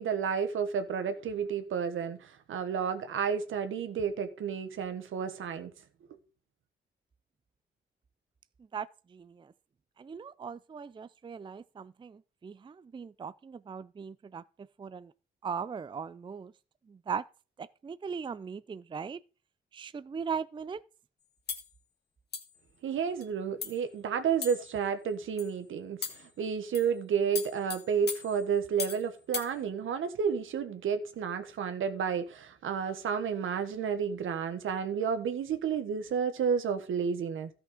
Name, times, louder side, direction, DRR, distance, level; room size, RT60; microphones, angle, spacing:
voice 1, 0.0-5.7 22.8-37.5, right 7 dB, 80° right, 1.4 m, -31 dB
voice 2, 8.7-9.5 10.0-14.4 14.8-15.1 15.4-16.5 16.9-17.2 17.6-19.2 19.7-20.8, right 6 dB, 25° right, 0.4 m, -39 dB
sound 1, 21.5-21.7 22.3-22.6 23.2-23.3 23.6-23.8 24.4-24.8 25.4-25.5 26.0-26.3 26.7-27.0 27.4-29.1 29.3-29.5, left 6 dB, 55° left, 2.1 m, -38 dB
13.0 x 5.8 x 5.1 m
cardioid pair, 80°, 21 cm